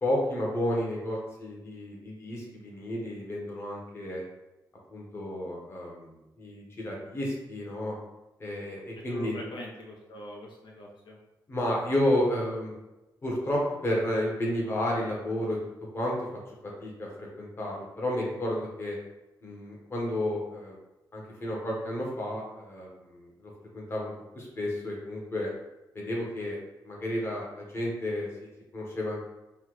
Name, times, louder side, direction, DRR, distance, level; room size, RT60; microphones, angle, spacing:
voice 1, 0.0-4.2 4.9-8.0 8.4-9.4 11.5-12.7 13.2-15.6 15.9-16.3 16.6-19.0 19.4-20.8 21.1-25.5 25.9-26.6 26.8-29.2, left 1 dB, 30° left, -2 dB, 1.0 m, -31 dB
voice 2, 9.1-11.2, left 1 dB, 80° left, -1 dB, 0.7 m, -42 dB
5.6 x 2.3 x 3.1 m, 1.0 s
wide cardioid pair, 145°, 8 cm